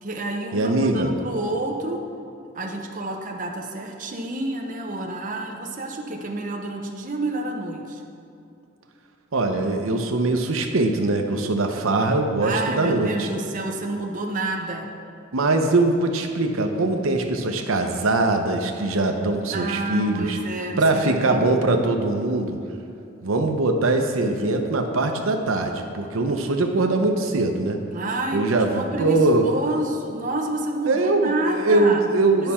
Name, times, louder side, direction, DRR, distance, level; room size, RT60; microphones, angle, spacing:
voice 1, 0.0-2.0 2.5-8.0 12.4-14.9 19.5-21.6 27.9-32.0 32.4-32.5, right 2 dB, 40° right, 1 dB, 0.7 m, -29 dB
voice 2, 0.5-1.1 9.3-13.3 15.3-20.4 20.8-22.6 23.2-27.8 28.3-29.5 30.9-32.5, right 2 dB, 85° right, 4 dB, 0.7 m, -22 dB
10.5 x 5.7 x 4.3 m, 2.6 s
head